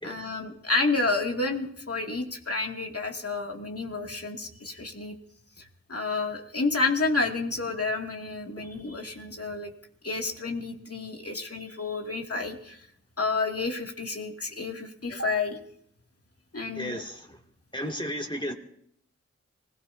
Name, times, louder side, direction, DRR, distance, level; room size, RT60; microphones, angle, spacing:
voice 1, 0.0-5.1 5.6-5.7 5.9-9.7 10.0-12.8 13.2-15.6 16.5-17.0, left 3 dB, 55° left, 1 dB, 2.6 m, -30 dB
voice 2, 16.7-17.4 17.7-18.5, equal, 15° left, 1 dB, 2.5 m, -34 dB
25.5 x 17.0 x 2.8 m, 0.67 s
cardioid pair, 55°, 29 cm